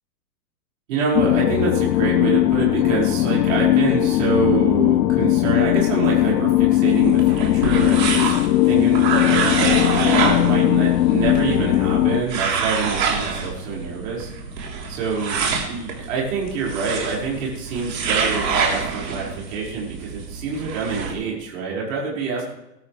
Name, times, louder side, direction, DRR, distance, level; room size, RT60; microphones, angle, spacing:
voice 1, 0.9-14.3 14.9-22.5, right 5 dB, 50° right, -5 dB, 5.4 m, -26 dB
sound 1, 1.1-12.2, left 15 dB, 80° left, 0.7 m, -18 dB
sound 2, 6.9-21.1, right 5 dB, 80° right, 3.8 m, -26 dB
20.0 x 12.5 x 3.4 m, 0.89 s
supercardioid pair, 170°, 50 cm